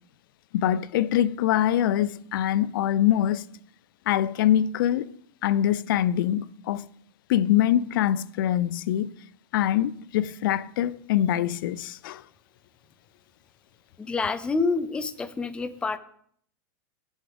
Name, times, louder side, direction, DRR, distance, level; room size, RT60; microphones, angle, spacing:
voice 1, 0.5-3.4 4.1-5.1 5.4-6.8 7.3-9.1 9.5-12.2, left 11 dB, 65° left, 0.4 m, -24 dB
voice 2, 14.1-16.0, left 4 dB, 10° left, 0.4 m, -27 dB
14.5 x 6.3 x 3.4 m
supercardioid pair, 155°, 12 cm